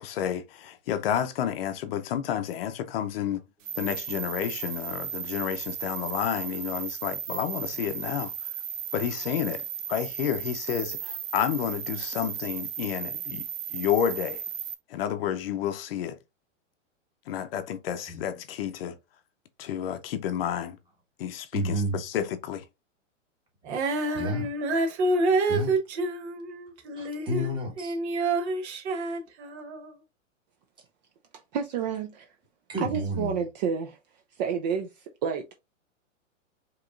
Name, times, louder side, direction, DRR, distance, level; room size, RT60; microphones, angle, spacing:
voice 1, 0.0-3.4 3.8-8.3 8.9-13.4 13.7-14.4 14.9-16.2 17.3-18.9 19.6-20.8 21.2-22.6, left 10 dB, 50° left, 0.6 m, -30 dB
sound 1, 3.6-14.7, right 9 dB, 80° right, 1.0 m, -35 dB
voice 2, 21.5-22.0 24.1-24.5 25.5-25.7 26.9-28.0 32.7-33.3, equal, 10° right, 1.4 m, -30 dB
Female singing, 23.7-27.5 27.8-29.9, right 2 dB, 60° right, 1.2 m, -28 dB
voice 3, 31.5-32.3 32.8-34.0 34.4-35.4, right 7 dB, 35° right, 0.5 m, -30 dB
4.9 x 3.0 x 2.5 m
hypercardioid pair, 140°, 38 cm